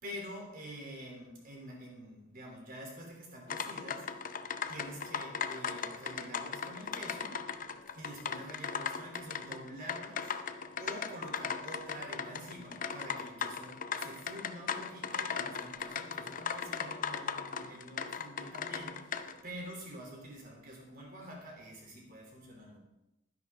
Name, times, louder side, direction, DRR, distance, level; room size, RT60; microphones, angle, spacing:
voice 1, 0.0-4.1 4.7-7.4 7.9-10.3 10.8-19.0 19.4-22.8, equal, 45° right, 0 dB, 3.0 m, -47 dB
sound 1, 3.5-19.4, left 6 dB, 40° left, 0.5 m, -38 dB
12.0 x 10.5 x 3.6 m, 0.94 s
head